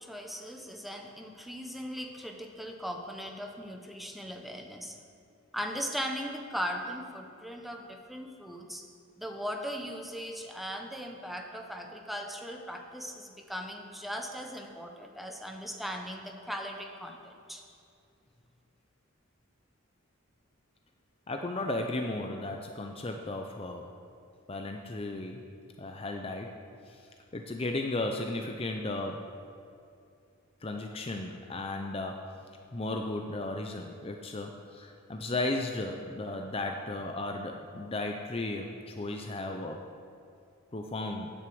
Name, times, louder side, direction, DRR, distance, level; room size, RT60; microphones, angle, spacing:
voice 1, 0.0-5.0 5.5-8.8 9.2-17.6, equal, ahead, 2 dB, 0.8 m, -38 dB
voice 2, 21.3-23.9 24.5-25.4 25.8-26.6 26.9-27.0 27.3-29.3 30.6-32.4 32.7-39.8 40.7-41.3, left 2 dB, 25° left, 3 dB, 0.5 m, -35 dB
9.3 x 7.8 x 7.8 m, 2.5 s
head